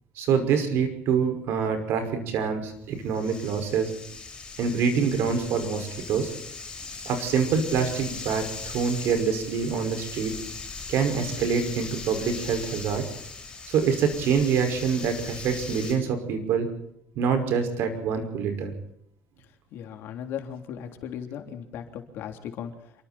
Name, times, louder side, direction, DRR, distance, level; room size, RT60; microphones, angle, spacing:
voice 1, 0.2-3.9 4.6-6.3 7.0-10.3 10.9-13.1 13.7-16.7 17.2-18.7, right 6 dB, 55° right, 7 dB, 5.7 m, -25 dB
sound 1, 2.7-15.9, left 4 dB, 15° left, 7.9 m, -39 dB
voice 2, 19.7-22.7, left 9 dB, 50° left, 5 dB, 3.5 m, -37 dB
28.5 x 24.0 x 4.4 m, 0.72 s
cardioid pair, 180°, 5 cm